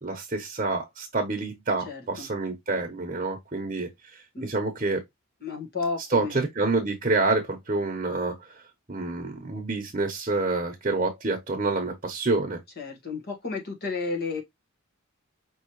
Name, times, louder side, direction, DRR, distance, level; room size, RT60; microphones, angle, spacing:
voice 1, 0.0-5.0 6.1-8.3 8.9-12.6, right 3 dB, 35° right, 1.0 m, -27 dB
voice 2, 1.8-2.3 4.3-4.5 5.4-6.5 12.8-14.4, left 4 dB, 45° left, 1.6 m, -32 dB
5.6 x 3.0 x 3.1 m
head